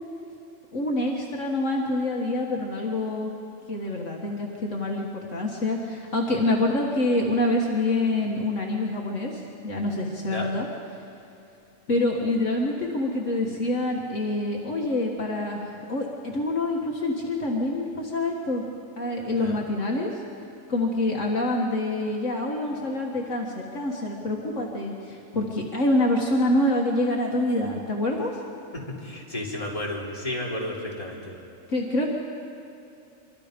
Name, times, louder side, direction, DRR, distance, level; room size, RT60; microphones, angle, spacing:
voice 1, 0.7-3.3 3.7-10.7 11.9-18.6 19.0-20.2 20.7-28.3 31.7-32.1, left 1 dB, 65° left, -1 dB, 2.0 m, -26 dB
voice 2, 28.7-31.4, left 1 dB, 25° left, -3 dB, 3.4 m, -33 dB
25.5 x 23.0 x 5.2 m, 2.6 s
omnidirectional pair, 1.4 m